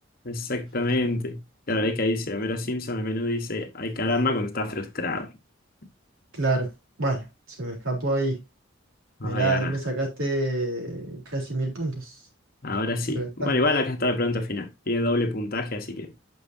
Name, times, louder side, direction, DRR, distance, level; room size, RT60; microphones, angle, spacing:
voice 1, 0.2-5.3 9.2-9.7 12.6-16.1, left 2 dB, 45° left, 1.2 m, -27 dB
voice 2, 6.3-6.7 7.0-8.4 9.2-12.1 13.2-13.6, right 2 dB, 80° right, 3.6 m, -27 dB
9.3 x 6.4 x 2.7 m
head